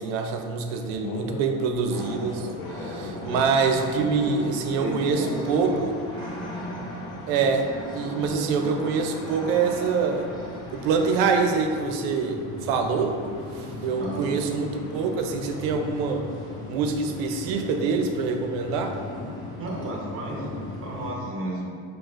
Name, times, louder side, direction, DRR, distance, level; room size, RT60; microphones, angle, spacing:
voice 1, 0.0-2.5 2.7-5.9 7.3-10.3 10.7-13.2 13.5-16.3 16.7-19.0, right 5 dB, 85° right, 5 dB, 0.5 m, -25 dB
sound 1, 0.7-16.8, left 3 dB, 60° left, 0.6 m, -45 dB
sound 2, 1.9-21.1, left 1 dB, 10° left, 0.8 m, -37 dB
voice 2, 4.8-5.8 14.0-14.3 19.6-20.5 20.8-21.7, right 1 dB, 40° right, -2 dB, 0.9 m, -33 dB
6.1 x 2.5 x 2.4 m, 2.2 s
cardioid pair, 125°, 36 cm